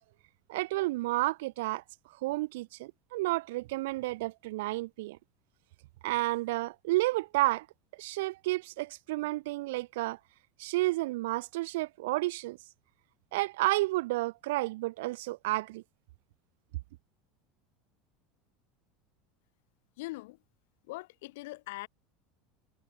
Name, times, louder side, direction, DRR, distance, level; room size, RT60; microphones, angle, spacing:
voice 1, 0.5-1.8 2.2-5.2 6.0-7.7 8.0-10.2 10.6-12.6 13.3-15.8, right 19 dB, 80° right, 2.7 m, -31 dB
voice 2, 20.0-20.4 20.9-21.9, left 21 dB, 75° left, 6.9 m, -41 dB
supercardioid pair, 160°, 0 cm